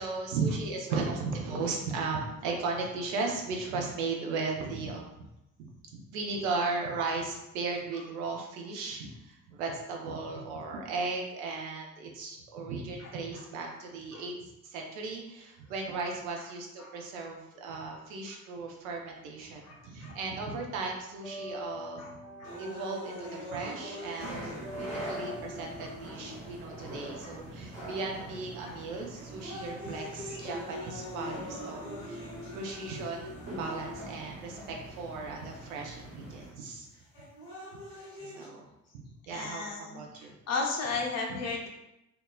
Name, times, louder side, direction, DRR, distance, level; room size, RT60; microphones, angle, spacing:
voice 1, 0.0-5.3 5.6-22.2 22.6-24.4 24.7-32.2 32.5-36.9 38.2-38.6 38.9-40.4 41.3-41.4, right 3 dB, 75° right, 1 dB, 0.5 m, -36 dB
sound 1, 18.9-20.0 20.3-28.2, left 1 dB, 5° right, 0.5 m, -46 dB
voice 2, 19.6-20.2 22.0-22.1 22.4-22.6 24.2-24.3 25.2-25.3 25.8-25.9 27.2-27.4 27.9-28.0 28.6-28.8 30.3-30.4 39.3-40.0 40.5-41.7, left 4 dB, 40° left, 0 dB, 0.6 m, -35 dB
sound 2, 22.4-26.5 27.2-27.3 28.1-28.4 28.9-34.4 35.4-35.5 36.9-38.4, left 1 dB, 80° left, 1.1 m, -43 dB
sound 3, 24.2-36.5, right 1 dB, 35° right, 1.1 m, -44 dB
2.8 x 2.2 x 2.2 m, 0.88 s
figure-of-eight pair, 40°, 41 cm